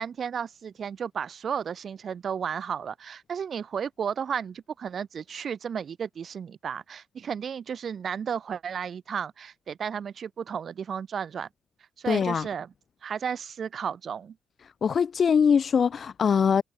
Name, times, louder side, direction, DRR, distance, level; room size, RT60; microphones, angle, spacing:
voice 1, 0.0-11.5 12.0-12.7 13.0-14.4, right 7 dB, 50° right, 3.7 m, -33 dB
voice 2, 12.1-12.5 14.8-16.6, left 6 dB, 50° left, 3.1 m, -22 dB
cardioid pair, 90°, 0 cm